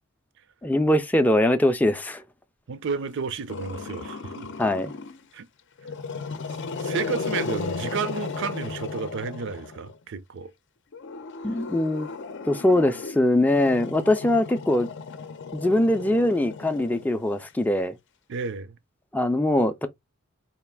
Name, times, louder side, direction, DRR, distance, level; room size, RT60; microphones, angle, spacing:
voice 1, 0.6-2.2 4.6-4.9 11.4-12.1 12.5-14.9 15.5-17.9 19.1-19.9, left 1 dB, 10° left, 0.4 m, -22 dB
voice 2, 2.7-4.5 5.3-5.5 6.8-10.5 18.3-18.8, right 5 dB, 60° right, 0.5 m, -32 dB
Growling, 3.5-5.2 5.8-9.9 10.9-17.4, left 4 dB, 60° left, 0.6 m, -35 dB
4.1 x 2.4 x 3.4 m
head